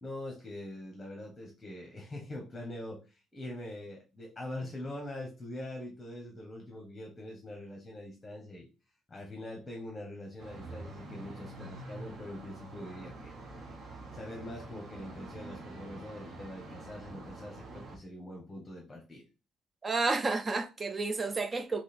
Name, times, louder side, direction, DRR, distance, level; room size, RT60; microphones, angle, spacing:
voice 1, 0.0-8.7 9.1-13.4 14.1-19.2, left 1 dB, 15° left, 1.0 m, -43 dB
sound 1, 10.4-18.0, right 2 dB, 40° right, 1.0 m, -46 dB
voice 2, 19.8-21.8, right 3 dB, 20° right, 0.5 m, -31 dB
3.9 x 3.0 x 4.2 m
cardioid pair, 160°, 0 cm